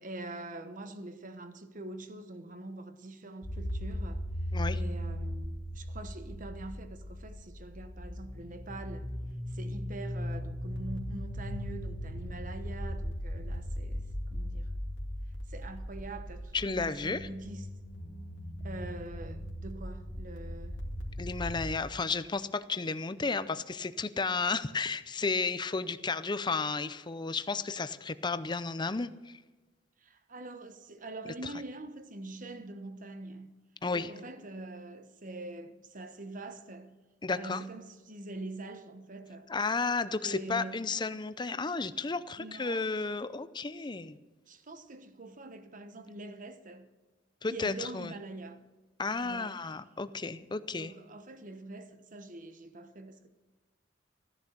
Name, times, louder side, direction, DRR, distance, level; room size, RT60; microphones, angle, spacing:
voice 1, 0.0-4.2 4.7-9.1 9.5-14.7 15.5-17.7 18.6-20.8 30.0-33.5 33.9-37.0 37.3-39.5 40.2-40.9 42.1-42.9 43.8-43.9 44.5-46.9 47.5-48.6 49.2-49.6 50.8-53.3, right 2 dB, 45° right, 1.2 m, -44 dB
sound 1, 3.4-21.6, equal, 80° left, 2.4 m, -38 dB
voice 2, 16.5-17.3 21.2-29.4 33.8-34.1 37.2-37.6 39.5-44.2 47.4-48.1 49.0-50.9, left 4 dB, 25° left, 0.6 m, -33 dB
15.0 x 10.5 x 6.7 m
head